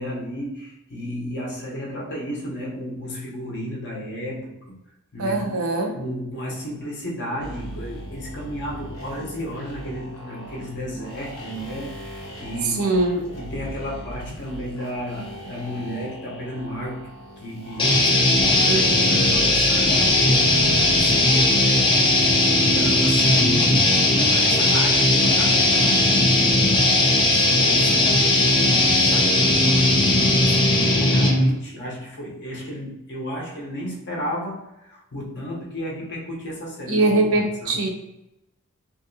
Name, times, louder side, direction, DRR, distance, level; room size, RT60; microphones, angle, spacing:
voice 1, 0.0-4.8 5.1-5.6 5.9-12.9 13.4-17.1 17.4-26.7 27.1-37.8, equal, 55° left, -3 dB, 0.8 m, -33 dB
voice 2, 5.2-5.9 12.8-13.2 18.7-19.4 36.9-37.9, right 2 dB, 65° right, 2 dB, 0.6 m, -22 dB
sound 1, 7.4-21.4, right 1 dB, 80° left, 1.0 m, -39 dB
sound 2, 17.8-31.5, left 2 dB, 20° left, 0.4 m, -18 dB
2.8 x 2.7 x 2.6 m, 0.89 s
head